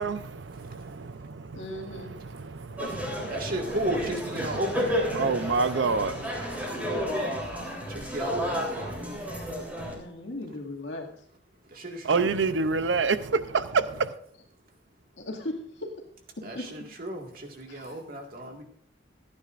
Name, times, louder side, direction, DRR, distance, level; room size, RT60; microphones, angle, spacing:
voice 1, 0.0-3.5 5.1-6.5 12.0-14.1, right 4 dB, 75° right, 0.6 m, -28 dB
voice 2, 1.5-2.1 6.8-7.5 9.9-11.1 15.2-15.9 16.4-16.7 17.7-18.0, left 1 dB, 80° left, 2.2 m, -37 dB
sound 1, 2.8-9.9, equal, 10° right, 3.6 m, -32 dB
voice 3, 3.3-5.1 7.9-9.4 11.7-12.3 16.4-18.6, right 1 dB, 55° right, 2.0 m, -34 dB
26.0 x 9.8 x 2.6 m
head